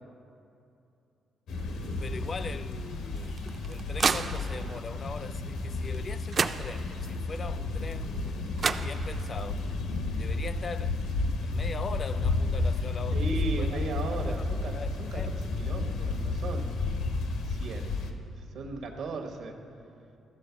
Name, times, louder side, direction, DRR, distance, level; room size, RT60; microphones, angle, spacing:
sound 1, 1.5-18.1, left 3 dB, 80° left, 0.8 m, -32 dB
voice 1, 2.0-8.5 8.8-9.7 10.1-11.0 11.4-14.3 14.6-15.4, left 4 dB, 40° left, 0.3 m, -41 dB
arrow and bow in one, 3.2-4.8 5.9-6.0 6.3-7.2 8.3-8.4 8.6-9.5, right 5 dB, 45° right, 0.3 m, -31 dB
voice 2, 13.1-15.2 15.6-16.8 17.3-18.1 18.4-19.6, right 3 dB, 75° right, 1.1 m, -37 dB
13.0 x 4.4 x 6.8 m
cardioid pair, 90°, 0 cm